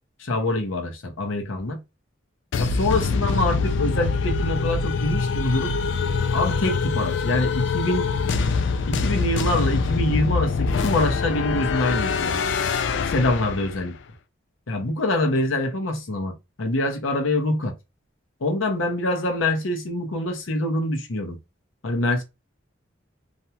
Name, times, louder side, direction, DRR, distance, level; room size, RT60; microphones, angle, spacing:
voice 1, 0.2-1.8 2.6-5.7 6.3-8.1 8.9-12.4 13.0-14.0 14.7-17.7 18.4-21.4 21.8-22.2, left 1 dB, 80° left, 0.8 m, -25 dB
sound 1, 2.5-13.9, left 4 dB, 65° left, 0.3 m, -24 dB
2.5 x 2.1 x 2.8 m
head